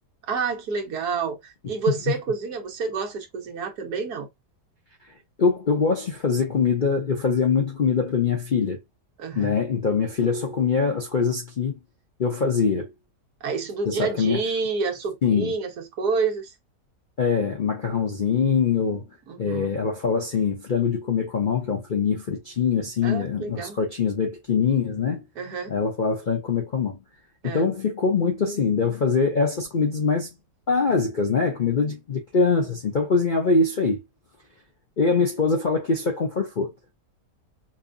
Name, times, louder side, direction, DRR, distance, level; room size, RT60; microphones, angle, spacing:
voice 1, 0.3-4.3 9.2-9.5 13.4-16.5 19.3-19.7 23.0-23.8 25.4-25.7 27.4-27.7, right 5 dB, 70° right, 1.4 m, -28 dB
voice 2, 5.4-8.8 9.4-11.8 12.2-12.9 13.9-14.4 15.2-15.5 17.2-19.0 19.4-25.2 25.7-27.0 27.4-30.3 30.7-34.0 35.0-36.9, left 5 dB, 50° left, 0.6 m, -23 dB
5.3 x 2.1 x 2.6 m
omnidirectional pair, 1.8 m